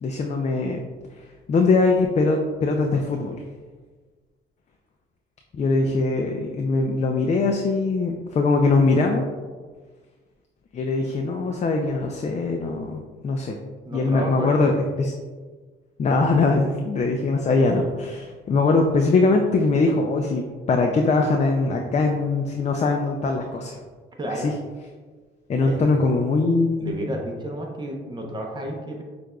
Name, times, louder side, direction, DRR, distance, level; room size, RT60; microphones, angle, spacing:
voice 1, 0.0-0.8 1.5-3.4 5.5-9.2 10.7-13.6 13.9-14.7 15.0-15.1 16.0-23.8 24.3-24.5 25.5-27.1, left 3 dB, 35° left, 3 dB, 0.4 m, -22 dB
voice 2, 13.8-14.7 24.2-24.6 25.6-25.9 26.8-29.0, right 1 dB, 20° right, 0 dB, 0.8 m, -31 dB
6.3 x 2.5 x 2.3 m, 1.4 s
cardioid pair, 90°, 20 cm